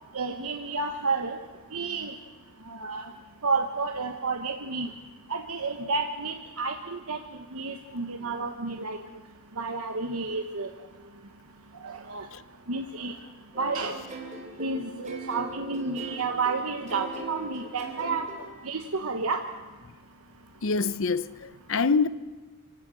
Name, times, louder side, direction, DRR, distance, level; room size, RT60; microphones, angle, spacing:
voice 1, 0.1-1.4 1.7-2.1 2.7-3.1 3.4-4.9 5.3-7.2 7.5-9.0 9.6-10.7 11.8-12.3 12.7-13.1 13.6-14.0 14.6-18.2 18.6-19.4, right 4 dB, 85° right, 1.2 m, -30 dB
sound 1, 13.5-18.6, right 2 dB, 35° right, 3.2 m, -41 dB
voice 2, 20.6-22.1, left 4 dB, 60° left, 0.7 m, -25 dB
24.5 x 16.0 x 7.8 m
head